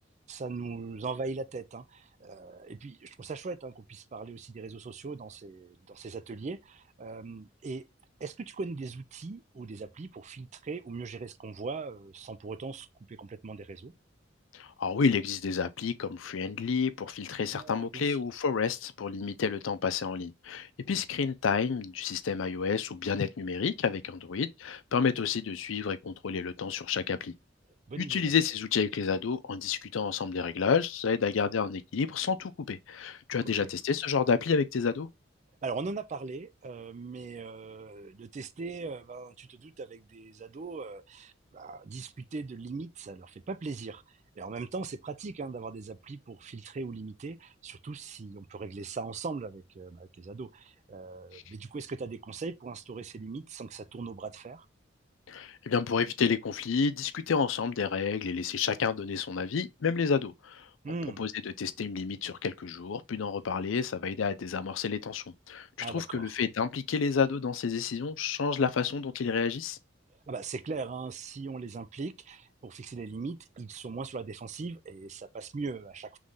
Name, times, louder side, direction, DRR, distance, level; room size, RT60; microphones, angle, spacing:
voice 1, 0.3-7.8 8.2-13.9 17.5-18.2 20.9-21.0 27.9-28.3 33.4-33.7 35.6-54.7 60.8-61.2 65.8-66.3 70.3-76.2, right 4 dB, 35° right, 0.4 m, -40 dB
voice 2, 14.5-27.3 28.0-35.1 51.3-51.4 55.3-60.7 61.2-69.8, left 5 dB, 85° left, 0.5 m, -30 dB
3.7 x 3.2 x 3.8 m
head